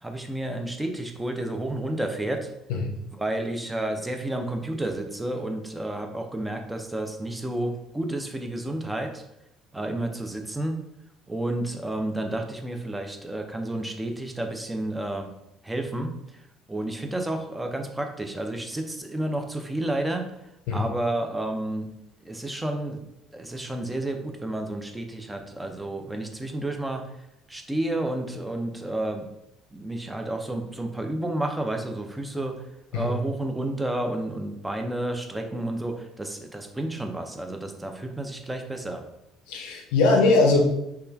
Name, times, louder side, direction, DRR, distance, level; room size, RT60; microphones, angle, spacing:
voice 1, 0.0-2.5 3.1-9.2 9.7-10.8 11.3-15.3 15.6-20.3 20.7-21.9 22.2-23.0 23.3-27.1 27.5-29.3 29.7-32.7 32.9-39.0, right 1 dB, 10° right, 4 dB, 0.4 m, -31 dB
voice 2, 39.5-40.6, left 3 dB, 70° left, 1 dB, 0.5 m, -20 dB
3.0 x 2.2 x 2.3 m, 0.83 s
hypercardioid pair, 60°, 0 cm